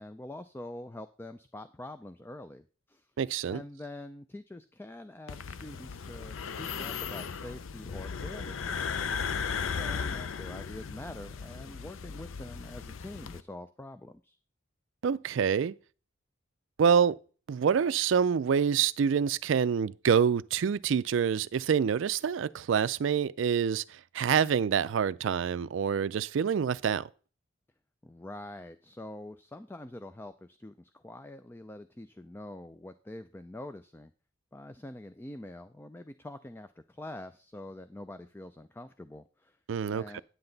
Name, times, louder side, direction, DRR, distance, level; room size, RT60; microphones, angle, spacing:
voice 1, 0.0-3.1 3.5-9.2 9.7-14.4 28.0-34.1 34.5-39.6 39.9-40.2, left 1 dB, 10° left, 0.3 m, -45 dB
voice 2, 3.2-3.6 15.0-15.8 16.8-17.2 17.5-27.1 39.7-40.2, right 7 dB, 70° right, 0.4 m, -26 dB
sound 1, 5.3-13.4, left 6 dB, 80° left, 0.6 m, -36 dB
9.7 x 7.8 x 3.9 m
head